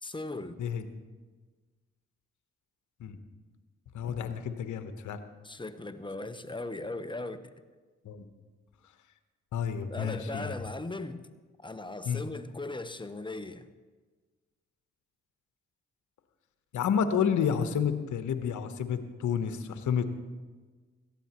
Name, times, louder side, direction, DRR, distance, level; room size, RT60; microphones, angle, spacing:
voice 1, 0.0-0.6 5.4-7.4 9.9-11.3 11.6-13.7, left 2 dB, 15° left, 10 dB, 1.1 m, -38 dB
voice 2, 3.9-5.2 8.0-8.2 9.5-10.5 12.1-12.2 16.7-20.2, left 7 dB, 70° left, 9 dB, 1.1 m, -30 dB
17.5 x 13.5 x 3.0 m, 1.4 s
hypercardioid pair, 45°, 31 cm